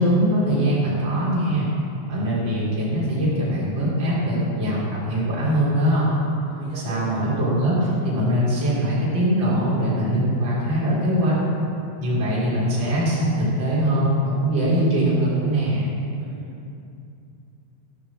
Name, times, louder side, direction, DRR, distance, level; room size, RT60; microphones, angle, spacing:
voice 1, 0.0-1.7 2.1-6.1 6.8-11.3 12.0-15.9, equal, 30° right, -8 dB, 3.9 m, -22 dB
voice 2, 6.5-7.3 16.2-16.5, right 1 dB, 60° right, -7 dB, 3.0 m, -37 dB
14.0 x 6.8 x 7.1 m, 2.6 s
omnidirectional pair, 4.7 m